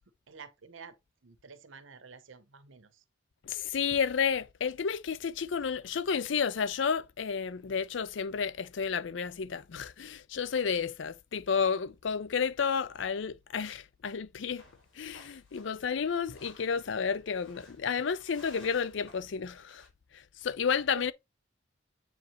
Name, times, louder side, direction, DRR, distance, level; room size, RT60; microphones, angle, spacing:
voice 1, 0.3-1.0 1.2-3.0 21.0-21.1, right 4 dB, 75° right, 0.8 m, -49 dB
voice 2, 3.4-14.6 15.0-19.8 20.1-21.1, left 6 dB, 65° left, 0.5 m, -31 dB
sound 1, 14.6-19.9, left 2 dB, 85° left, 4.9 m, -57 dB
8.0 x 4.9 x 3.0 m
head